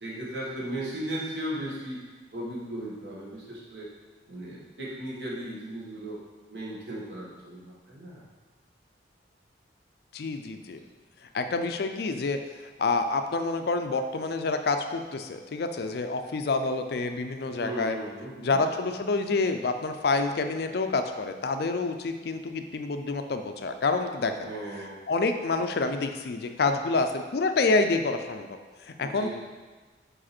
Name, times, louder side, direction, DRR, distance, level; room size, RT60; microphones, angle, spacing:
voice 1, 0.0-2.0 2.3-3.9 4.3-6.2 6.5-8.2 17.4-18.6 24.4-25.0 29.0-29.3, right 1 dB, 65° right, -6 dB, 1.7 m, -36 dB
voice 2, 10.1-10.8 11.3-12.4 12.8-18.0 18.4-24.3 25.1-29.3, left 3 dB, 55° left, 7 dB, 0.4 m, -28 dB
5.0 x 4.8 x 4.3 m, 1.3 s
head